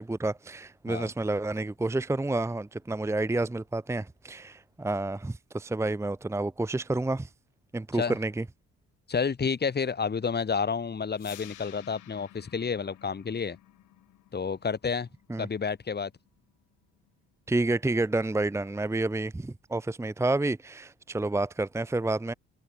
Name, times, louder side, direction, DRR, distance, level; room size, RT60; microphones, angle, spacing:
voice 1, 0.0-7.3 7.7-8.4 15.3-15.5 17.5-22.3, right 2 dB, 10° right, 0.8 m, -29 dB
voice 2, 9.1-13.6 14.3-15.1 15.4-16.1, left 5 dB, 35° left, 2.2 m, -30 dB
sound 1, 11.2-17.2, left 15 dB, 85° left, 3.7 m, -53 dB
cardioid pair, 90°, 30 cm